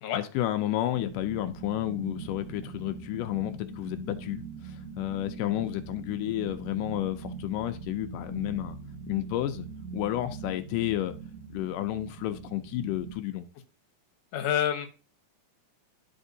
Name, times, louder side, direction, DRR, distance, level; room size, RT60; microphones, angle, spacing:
voice 1, 0.2-8.8 9.1-11.2 11.5-13.5, left 14 dB, 85° left, 2.1 m, -31 dB
sound 1, 0.9-13.1, right 5 dB, 40° right, 1.1 m, -42 dB
voice 2, 14.3-14.9, left 10 dB, 65° left, 2.0 m, -27 dB
12.0 x 4.3 x 2.7 m
omnidirectional pair, 3.7 m